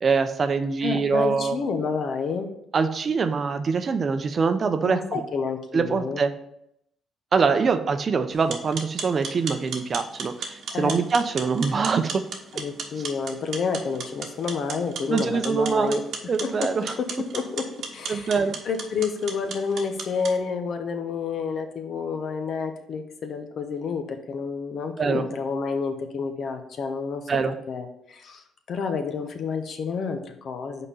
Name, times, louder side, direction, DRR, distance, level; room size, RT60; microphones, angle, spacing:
voice 1, 0.0-1.6 2.7-5.2 5.7-6.3 7.3-12.2 15.1-16.0 16.3-16.9 18.1-18.6 25.0-25.2 27.3-27.6, right 5 dB, 45° right, 9 dB, 0.6 m, -24 dB
voice 2, 0.8-2.5 4.8-6.2 10.7-11.0 12.5-18.3 18.6-30.9, left 5 dB, 60° left, 6 dB, 0.9 m, -30 dB
sound 1, 8.3-20.3, right 5 dB, 70° right, 1.1 m, -36 dB
5.5 x 4.2 x 5.4 m, 0.76 s
cardioid pair, 90°, 0 cm